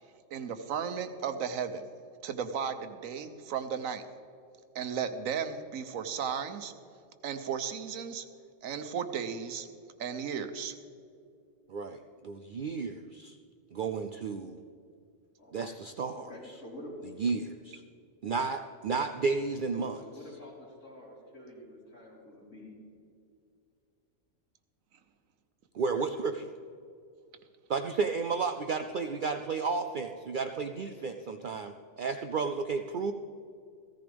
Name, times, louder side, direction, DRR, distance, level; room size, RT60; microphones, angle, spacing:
voice 1, 0.3-1.9 2.2-4.1 4.7-6.7 7.2-8.3 8.6-9.7 10.0-10.8, right 7 dB, 90° right, 9 dB, 1.2 m, -35 dB
voice 2, 11.7-13.4 13.7-14.6 15.5-16.3 17.2-17.8 18.2-20.0 25.7-26.5 27.7-33.1, right 4 dB, 60° right, 7 dB, 0.5 m, -32 dB
voice 3, 16.1-17.0 19.0-19.3 19.7-22.7, left 1 dB, 70° left, -7 dB, 4.5 m, -48 dB
15.5 x 14.0 x 3.4 m, 2.5 s
omnidirectional pair, 1.4 m